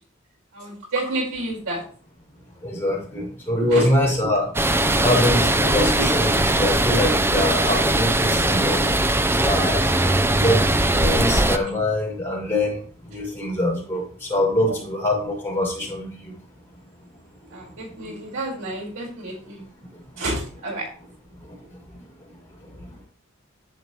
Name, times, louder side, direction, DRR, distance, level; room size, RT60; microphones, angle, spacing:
voice 1, 0.5-1.8 3.7-3.9 14.7-14.8 17.5-19.6 20.2-20.8, right 2 dB, 90° right, -3 dB, 5.3 m, -29 dB
voice 2, 2.6-8.9 9.4-9.9 10.3-16.4 17.9-18.0 19.8-20.2 21.3-23.1, left 1 dB, 10° left, -3 dB, 6.1 m, -25 dB
sound 1, 4.5-11.6, right 1 dB, 10° right, 0.6 m, -20 dB
11.0 x 9.4 x 3.3 m, 0.42 s
head